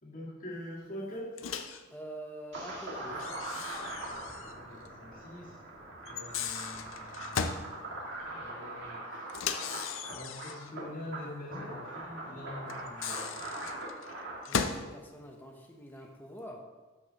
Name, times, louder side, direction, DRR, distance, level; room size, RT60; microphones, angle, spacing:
voice 1, 0.0-1.4 4.0-5.6 6.1-9.3 10.1-13.4, left 1 dB, 40° left, -4 dB, 2.0 m, -45 dB
Microwave oven, 1.4-1.8 3.2-4.6 4.8-4.9 6.1-7.7 9.3-10.7 12.7-14.9, left 6 dB, 70° left, 0.5 m, -36 dB
voice 2, 1.9-3.3 14.5-16.7, equal, 10° left, 1 dB, 0.7 m, -45 dB
sound 1, 2.5-14.4, right 2 dB, 60° right, 1.9 m, -41 dB
12.5 x 5.5 x 2.9 m, 1.3 s
head